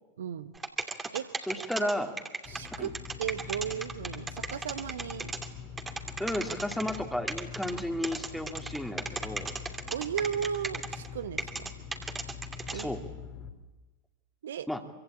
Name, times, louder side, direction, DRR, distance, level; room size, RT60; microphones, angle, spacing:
voice 1, 0.2-0.5 1.1-1.2 2.5-2.9 3.2-5.3 9.9-11.7 12.7-12.9 14.4-14.7, right 8 dB, 60° right, 11 dB, 1.2 m, -35 dB
sound 1, 0.5-5.5 5.8-7.0 7.3-11.1 11.4-12.8, right 4 dB, 15° right, 2.8 m, -36 dB
voice 2, 1.5-2.1 2.8-2.9 6.2-9.5 12.7-13.0 14.7-14.9, left 1 dB, ahead, 5 dB, 2.8 m, -33 dB
sound 2, 2.4-13.5, left 7 dB, 30° left, 3.2 m, -44 dB
26.0 x 25.0 x 8.7 m, 1.2 s
figure-of-eight pair, 90°, 0 cm